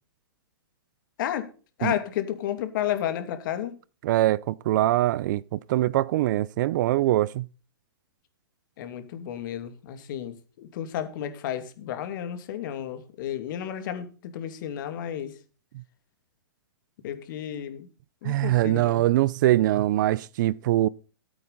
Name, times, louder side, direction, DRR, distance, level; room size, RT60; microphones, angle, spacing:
voice 1, 1.8-3.7 8.8-15.3 17.0-17.9 18.2-19.0, left 10 dB, 50° left, 2.4 m, -32 dB
voice 2, 4.0-7.5 18.2-20.9, right 15 dB, 50° right, 0.5 m, -23 dB
14.0 x 8.8 x 4.0 m
hypercardioid pair, 140°, 13 cm